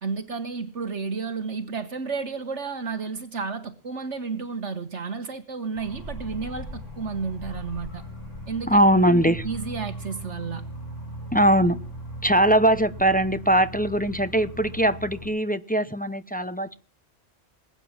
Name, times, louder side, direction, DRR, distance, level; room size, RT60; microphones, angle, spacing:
voice 1, 0.0-8.0 8.5-8.8 9.1-10.6, right 5 dB, 70° right, 1.7 m, -32 dB
sound 1, 5.7-15.3, equal, 85° left, 7.5 m, -38 dB
voice 2, 8.7-9.4 11.3-11.8 12.2-16.7, right 1 dB, 10° left, 0.5 m, -21 dB
21.5 x 9.1 x 7.3 m
omnidirectional pair, 1.2 m